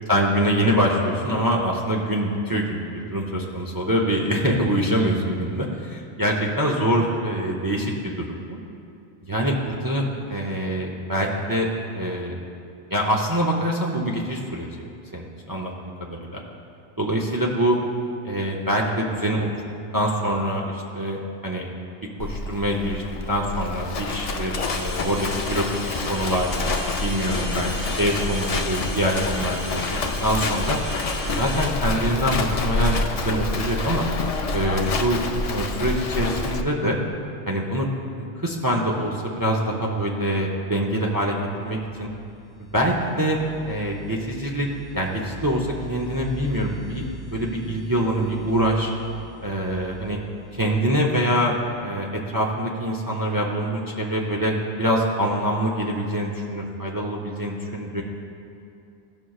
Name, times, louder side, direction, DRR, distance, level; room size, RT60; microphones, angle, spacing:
voice 1, 0.1-8.6 9.3-11.7 11.9-12.4 12.9-16.4 17.0-17.8 18.2-19.5 19.9-21.7 22.2-23.0 23.3-25.6 26.1-27.7 28.0-34.1 34.5-35.2 35.5-37.0 37.5-37.9 38.2-42.1 42.7-43.4 43.7-44.7 44.9-48.9 49.4-50.2 50.5-51.5 51.8-58.0, right 1 dB, 25° right, -2 dB, 0.5 m, -25 dB
Livestock farm animals working animals, 22.2-36.6, left 3 dB, 55° left, 0.4 m, -27 dB
sound 1, 24.6-31.7, equal, 10° left, 1.6 m, -35 dB
sound 2, 41.5-51.9, left 2 dB, 45° right, 1.2 m, -43 dB
14.5 x 6.2 x 2.3 m, 2.6 s
omnidirectional pair, 1.1 m